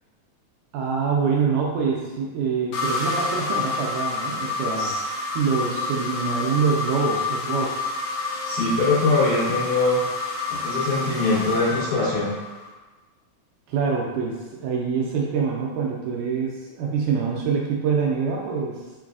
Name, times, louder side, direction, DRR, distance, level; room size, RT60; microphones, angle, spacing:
voice 1, 0.7-4.9 5.4-7.9 13.7-18.8, right 5 dB, 80° right, -2 dB, 1.9 m, -25 dB
sound 1, 2.7-12.7, left 3 dB, 85° left, 2.6 m, -28 dB
voice 2, 4.5-5.0 8.5-10.0 10.5-12.3, left 3 dB, 70° left, -7 dB, 2.2 m, -23 dB
6.6 x 2.4 x 2.3 m, 1.2 s
omnidirectional pair, 3.9 m